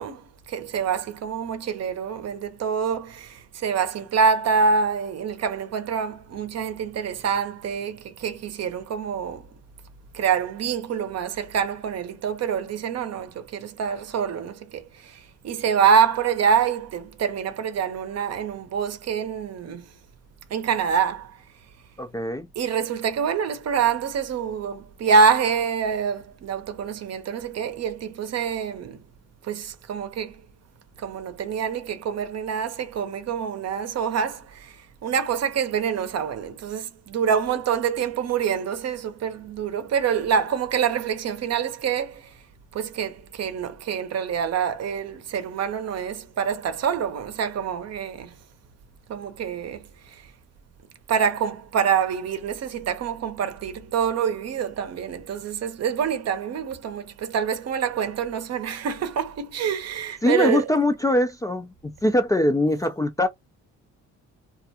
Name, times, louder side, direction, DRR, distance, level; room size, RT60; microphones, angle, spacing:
voice 1, 0.0-9.5 10.1-19.9 20.5-21.4 22.6-29.0 29.4-30.4 31.0-42.3 42.7-48.3 49.1-50.3 51.1-60.7, right 6 dB, 55° right, 0.7 m, -26 dB
voice 2, 22.0-22.5 60.2-63.3, left 1 dB, 10° left, 0.3 m, -22 dB
2.4 x 2.2 x 2.8 m
cardioid pair, 90°, 30 cm